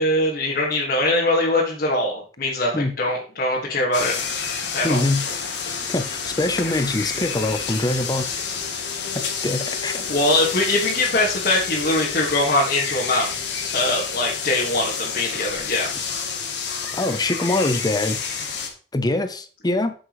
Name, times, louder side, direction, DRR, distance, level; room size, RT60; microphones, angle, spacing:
voice 1, 0.0-4.1 4.7-5.1 10.1-13.4 13.7-15.9, left 2 dB, 55° left, -5 dB, 1.9 m, -22 dB
sound 1, 3.9-18.7, left 6 dB, 90° left, 1.6 m, -29 dB
voice 2, 4.8-5.2 5.6-8.4 9.4-10.1 16.9-18.2 18.9-19.9, left 2 dB, 25° left, 9 dB, 0.7 m, -24 dB
9.3 x 6.4 x 3.2 m, 0.39 s
head